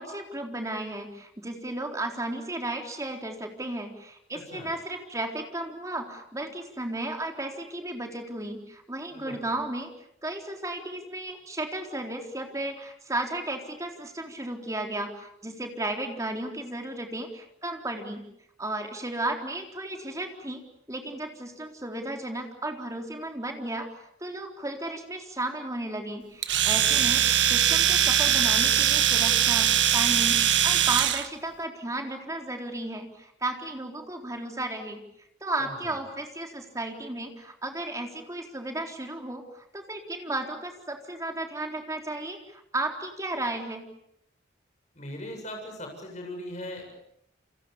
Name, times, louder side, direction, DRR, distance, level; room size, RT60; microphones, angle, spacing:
voice 1, 0.0-9.9 10.2-18.2 18.6-20.6 20.9-23.9 24.2-35.0 35.4-43.9, right 2 dB, 15° right, 3 dB, 3.9 m, -34 dB
Domestic sounds home sounds, 26.4-31.3, right 10 dB, 70° right, 1.8 m, -22 dB
voice 2, 26.7-27.1 35.6-36.0 44.9-46.9, left 1 dB, 40° left, 2 dB, 7.9 m, -39 dB
30.0 x 26.0 x 7.0 m, 0.74 s
head